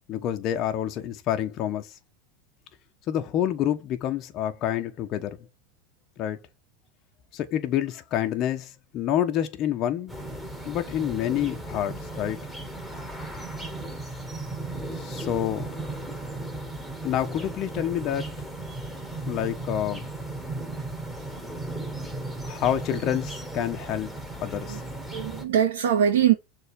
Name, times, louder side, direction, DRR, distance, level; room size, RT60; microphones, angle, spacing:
voice 1, 0.1-1.9 3.1-5.4 6.2-6.4 7.3-10.1 10.6-12.4 15.0-15.7 17.0-18.3 19.3-20.1 22.4-24.1 24.4-24.8, left 11 dB, 45° left, 1.2 m, -28 dB
sound 1, 10.1-25.4, right 2 dB, ahead, 4.0 m, -36 dB
voice 2, 25.1-26.3, right 9 dB, 75° right, 1.7 m, -23 dB
6.7 x 3.9 x 5.3 m
hypercardioid pair, 100°, 0 cm